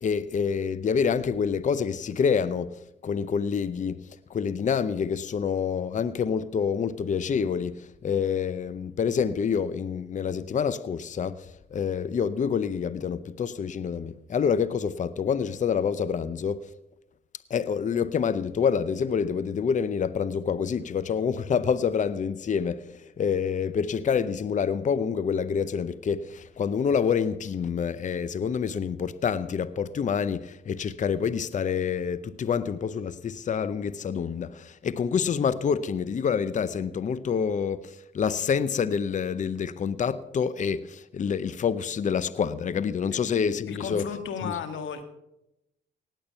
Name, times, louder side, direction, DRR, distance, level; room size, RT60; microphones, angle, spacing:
voice 1, 0.0-2.7 3.0-4.0 4.3-11.4 11.7-16.6 17.5-37.9 38.1-44.1 44.4-44.5, left 6 dB, 40° left, 0.7 m, -27 dB
voice 2, 43.7-45.0, left 6 dB, 75° left, 1.9 m, -34 dB
18.0 x 8.6 x 5.5 m
cardioid pair, 90°, 20 cm